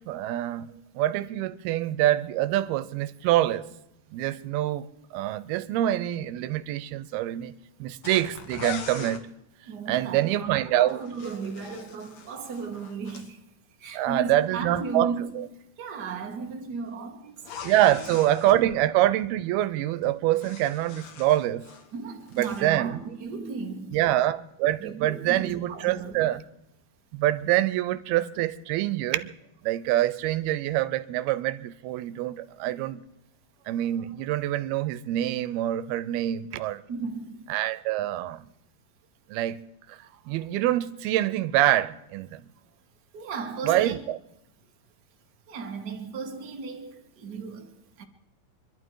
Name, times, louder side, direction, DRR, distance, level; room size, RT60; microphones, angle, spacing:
voice 1, 0.0-3.7 4.1-4.9 5.1-9.2 9.9-11.0 13.9-15.4 17.6-21.7 22.3-23.0 23.9-26.4 27.1-29.3 29.6-33.0 33.7-36.8 37.5-38.5 39.3-40.0 40.3-42.4 43.6-44.2, right 13 dB, 85° right, 2.7 m, -25 dB
sound 1, 8.0-9.2 10.9-13.3 17.4-18.6 20.0-21.9 22.2-22.7, left 6 dB, 55° left, 2.1 m, -41 dB
voice 2, 9.6-13.4 13.8-15.5 15.8-18.2 21.9-24.1 24.8-26.4 36.9-37.5 43.1-44.0 45.5-48.0, right 4 dB, 55° right, 1.1 m, -36 dB
25.5 x 12.0 x 4.7 m
omnidirectional pair, 4.4 m